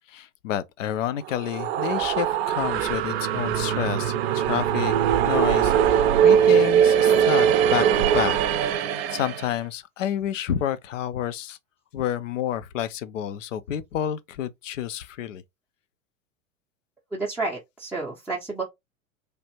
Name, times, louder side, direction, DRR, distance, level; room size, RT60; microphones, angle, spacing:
voice 1, 0.1-4.9 5.2-8.4 9.1-11.6 11.9-15.4, left 10 dB, 70° left, 0.5 m, -29 dB
sound 1, 1.2-9.6, right 9 dB, 50° right, 0.5 m, -21 dB
voice 2, 17.1-18.6, right 3 dB, 5° right, 0.5 m, -30 dB
3.3 x 2.4 x 2.8 m
figure-of-eight pair, 90°, 40 cm